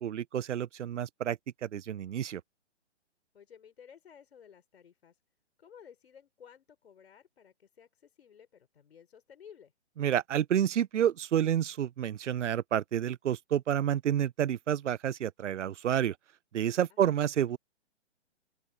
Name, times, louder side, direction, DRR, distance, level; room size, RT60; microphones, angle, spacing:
voice 1, 0.0-2.4 10.0-16.1 16.5-17.6, right 10 dB, 85° right, 0.6 m, -29 dB
voice 2, 3.3-5.2 5.6-9.7 16.9-17.3, left 8 dB, 60° left, 4.2 m, -55 dB
open air
hypercardioid pair, 160°, 35 cm